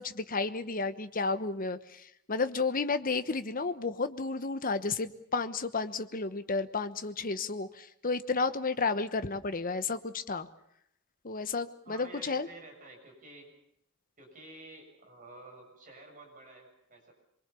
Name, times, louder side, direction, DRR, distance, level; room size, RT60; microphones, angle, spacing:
voice 1, 0.0-10.5 11.2-12.5, left 4 dB, 40° left, 11 dB, 1.1 m, -32 dB
voice 2, 11.8-13.5 14.2-17.1, right 2 dB, 40° right, 2 dB, 6.8 m, -51 dB
24.5 x 23.0 x 6.9 m, 0.76 s
head